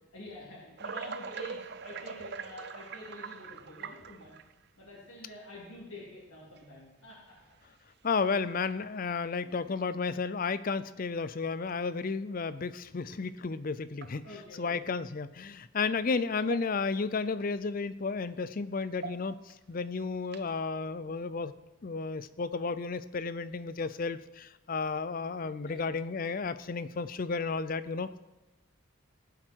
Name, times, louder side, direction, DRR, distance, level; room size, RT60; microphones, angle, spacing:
voice 1, 0.1-4.3 4.8-7.3 9.4-9.7 13.1-13.2 14.2-14.7 25.6-26.0, left 1 dB, 80° left, -5 dB, 3.4 m, -47 dB
sound 1, 0.8-4.6 5.4-5.5 6.6-6.7 7.4-7.7 8.1-8.2 8.7-8.9 10.2-10.3 13.1-13.2 13.9-14.6 16.0-16.1 16.4-17.0 17.4-17.5 18.8-19.5 20.2-20.6, right 6 dB, 50° right, 0.6 m, -43 dB
voice 2, 8.0-14.3 14.6-21.5 21.8-28.2, left 4 dB, 40° left, 14 dB, 0.5 m, -33 dB
19.0 x 7.7 x 4.6 m, 1.1 s
head